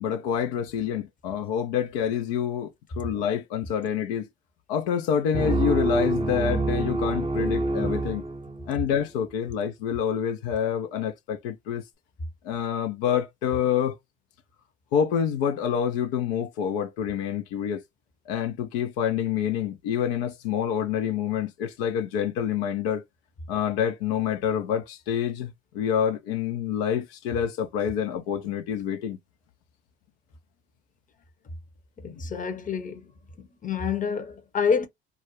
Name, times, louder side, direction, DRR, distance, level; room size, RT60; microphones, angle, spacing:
voice 1, 0.0-2.7 3.0-4.3 4.7-8.2 8.7-11.8 12.4-14.0 14.9-17.8 18.3-23.0 23.5-29.2, left 8 dB, 75° left, 0.6 m, -27 dB
sound 1, 5.3-8.9, right 2 dB, 20° right, 0.6 m, -27 dB
voice 2, 32.0-33.0 33.4-34.9, left 6 dB, 25° left, 0.7 m, -28 dB
2.4 x 2.1 x 3.0 m
hypercardioid pair, 65°, 29 cm